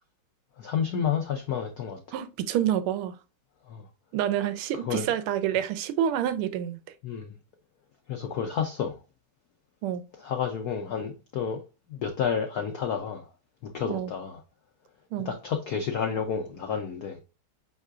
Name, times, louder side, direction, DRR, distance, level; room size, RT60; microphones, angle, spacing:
voice 1, 0.6-2.0 3.7-3.8 4.8-5.1 7.0-7.4 8.1-9.0 10.2-11.6 11.9-13.3 13.6-14.4 15.2-17.2, left 7 dB, 80° left, 0.8 m, -30 dB
voice 2, 2.1-3.1 4.1-6.8 9.8-10.0 13.9-14.1 15.1-15.4, right 10 dB, 80° right, 1.5 m, -28 dB
5.4 x 3.7 x 2.4 m
omnidirectional pair, 2.4 m